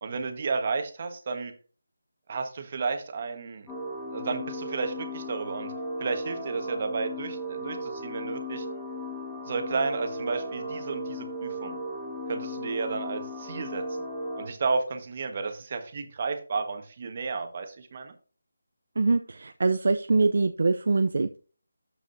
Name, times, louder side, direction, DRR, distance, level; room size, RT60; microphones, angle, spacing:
voice 1, 0.0-1.5 2.3-3.7 4.1-5.7 6.0-8.7 9.4-11.8 12.3-14.1 14.4-18.1, right 4 dB, 35° right, 6 dB, 1.2 m, -32 dB
sound 1, 3.7-14.5, equal, 10° left, 2.0 m, -36 dB
voice 2, 19.0-21.4, right 3 dB, 60° right, 9 dB, 0.4 m, -24 dB
12.5 x 4.9 x 2.6 m, 0.39 s
figure-of-eight pair, 165°, 0 cm